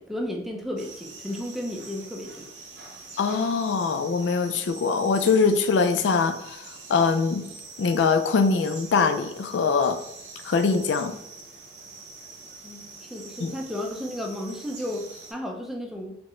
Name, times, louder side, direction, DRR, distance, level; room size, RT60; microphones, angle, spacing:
voice 1, 0.0-2.5 12.6-16.2, left 1 dB, ahead, 0.4 m, -33 dB
sound 1, 0.8-15.3, right 3 dB, 75° right, 0.8 m, -44 dB
voice 2, 3.2-7.5 7.8-10.0 10.4-11.2 13.4-13.5, left 5 dB, 85° left, 0.4 m, -23 dB
4.3 x 2.1 x 3.1 m
head